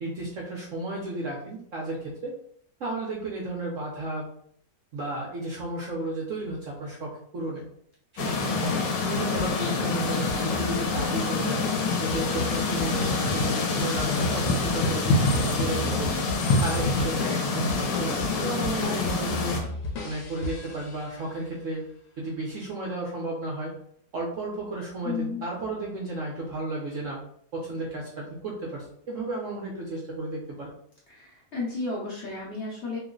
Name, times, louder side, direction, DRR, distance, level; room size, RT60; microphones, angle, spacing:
voice 1, 0.0-2.3 2.8-4.3 4.9-7.6 8.1-11.7 12.0-16.2 16.6-19.6 20.0-21.9 22.2-23.7 24.1-27.2 27.5-30.7, right 2 dB, 60° right, -3 dB, 0.9 m, -33 dB
sound 1, 8.2-19.6, left 3 dB, 90° left, 1.3 m, -26 dB
sound 2, 9.4-21.3, left 2 dB, 75° left, 1.3 m, -37 dB
voice 2, 18.3-18.8 25.0-25.4 31.1-33.0, left 3 dB, 50° left, -6 dB, 1.0 m, -33 dB
3.0 x 2.1 x 3.7 m, 0.64 s
omnidirectional pair, 1.9 m